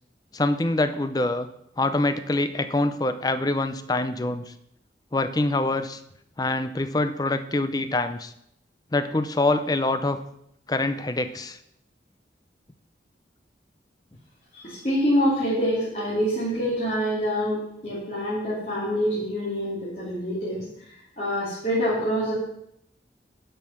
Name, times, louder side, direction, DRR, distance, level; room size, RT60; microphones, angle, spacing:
voice 1, 0.3-1.5 1.8-4.5 5.1-6.0 6.4-8.3 8.9-10.2 10.7-11.6, left 2 dB, 20° left, 11 dB, 0.5 m, -25 dB
voice 2, 14.5-20.6 21.2-22.3, equal, 40° left, -10 dB, 3.1 m, -26 dB
11.0 x 5.6 x 5.9 m, 0.75 s
head